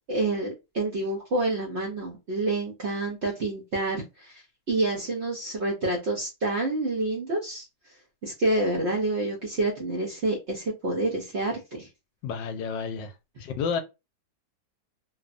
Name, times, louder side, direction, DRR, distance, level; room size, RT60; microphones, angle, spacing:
voice 1, 0.1-4.4 4.7-7.7 8.2-11.9, right 2 dB, 65° right, 0.6 m, -28 dB
voice 2, 12.2-13.1 13.4-13.8, left 6 dB, 75° left, 1.2 m, -30 dB
3.2 x 2.1 x 2.4 m
omnidirectional pair, 2.1 m